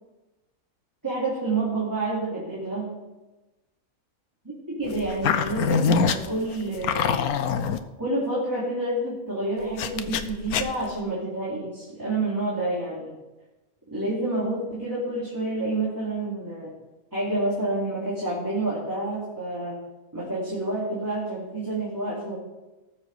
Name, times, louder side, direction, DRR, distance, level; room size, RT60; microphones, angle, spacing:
voice 1, 1.0-3.0 4.7-7.3 8.0-13.1 13.9-16.7 17.1-19.8 20.1-22.4, right 2 dB, 15° right, -7 dB, 3.0 m, -28 dB
sound 1, 4.9-7.8 9.8-10.9, left 6 dB, 85° left, 1.2 m, -24 dB
19.0 x 7.2 x 4.8 m, 1.1 s
omnidirectional pair, 1.5 m